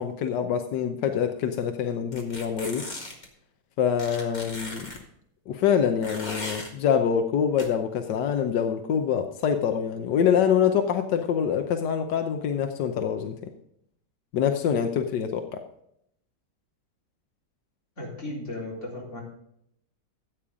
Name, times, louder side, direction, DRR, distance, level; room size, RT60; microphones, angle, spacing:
voice 1, 0.0-2.8 3.8-4.9 5.5-13.4 14.3-15.6, left 8 dB, 90° left, 6 dB, 1.4 m, -25 dB
sound 1, 2.1-3.3 4.0-5.0 6.0-6.7 7.6-7.7, left 1 dB, 25° left, 1.8 m, -37 dB
voice 2, 18.0-19.2, left 1 dB, 45° left, -4 dB, 4.4 m, -35 dB
13.5 x 8.6 x 3.7 m, 0.74 s
omnidirectional pair, 1.8 m